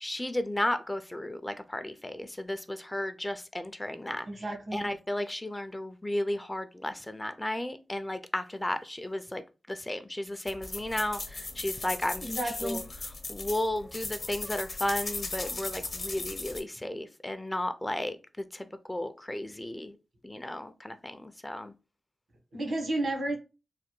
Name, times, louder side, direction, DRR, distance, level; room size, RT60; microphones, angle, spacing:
voice 1, 0.0-4.3 4.7-9.4 9.7-12.3 12.6-12.8 13.3-18.2 18.5-20.0 20.2-21.7, left 1 dB, 15° left, 0.3 m, -34 dB
voice 2, 4.2-4.9 12.2-12.8 22.5-23.4, right 1 dB, 75° right, 1.1 m, -32 dB
sound 1, 10.5-16.6, left 3 dB, 55° left, 0.7 m, -37 dB
3.2 x 2.2 x 3.0 m
cardioid pair, 60°, 0 cm